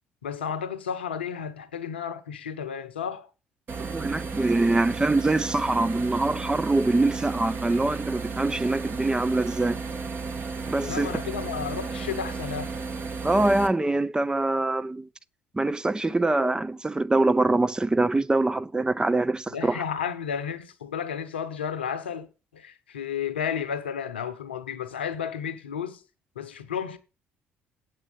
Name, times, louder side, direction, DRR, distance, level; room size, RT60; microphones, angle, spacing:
voice 1, 0.2-3.3 10.8-12.8 19.5-22.3 22.5-26.0 26.4-27.0, left 7 dB, 80° left, 0.9 m, -32 dB
sound 1, 3.7-13.7, right 4 dB, 40° right, 2.0 m, -33 dB
voice 2, 3.9-9.8 10.7-11.1 13.2-15.1 15.5-19.8, right 2 dB, 15° right, 0.6 m, -24 dB
8.5 x 7.2 x 8.3 m
figure-of-eight pair, 50°, 6 cm